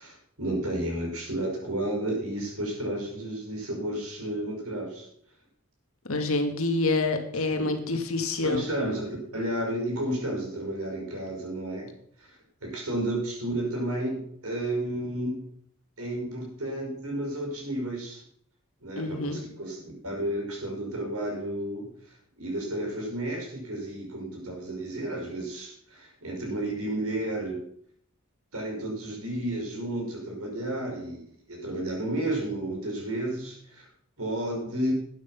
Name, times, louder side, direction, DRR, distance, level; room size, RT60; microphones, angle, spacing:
voice 1, 0.0-5.1 7.5-7.8 8.4-11.9 12.2-15.4 16.0-18.2 18.8-27.6 28.5-33.9 34.2-34.9, right 1 dB, 90° right, 0 dB, 5.5 m, -32 dB
voice 2, 6.1-8.6 19.0-19.4, left 2 dB, 75° left, 5 dB, 2.0 m, -27 dB
12.0 x 9.1 x 5.9 m, 0.66 s
head